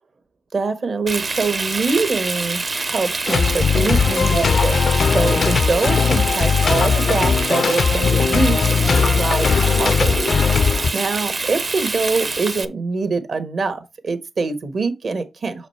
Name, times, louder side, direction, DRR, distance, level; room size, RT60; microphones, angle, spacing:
voice 1, 0.5-10.6 10.9-15.7, right 4 dB, 60° right, 1.4 m, -24 dB
Frying (food), 1.1-12.7, right 3 dB, 45° right, 0.8 m, -26 dB
sound 1, 3.3-10.9, left 6 dB, 65° left, 0.4 m, -18 dB
6.6 x 4.9 x 4.4 m
cardioid pair, 55°, 0 cm